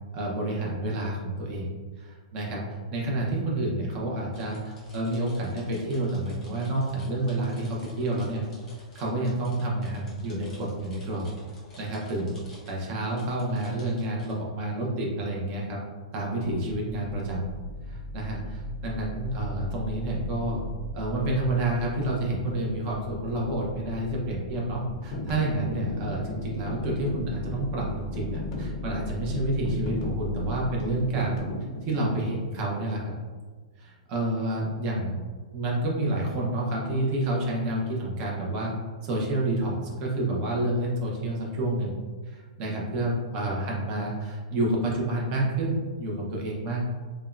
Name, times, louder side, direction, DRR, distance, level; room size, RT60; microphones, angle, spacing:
voice 1, 0.1-1.7 2.0-8.5 8.9-11.3 11.8-15.8 16.1-17.5 17.9-20.6 20.9-31.4 31.8-33.1 33.8-35.2 35.5-38.7 39.0-42.0 42.3-46.8, right 1 dB, 30° right, -2 dB, 0.6 m, -29 dB
sound 1, 4.3-14.4, left 1 dB, 10° left, 0.9 m, -52 dB
sound 2, 16.4-31.5, left 2 dB, 60° right, 1.0 m, -39 dB
sound 3, 25.0-32.3, left 2 dB, 40° left, 0.5 m, -36 dB
3.4 x 2.1 x 2.4 m, 1.4 s
hypercardioid pair, 160°, 4 cm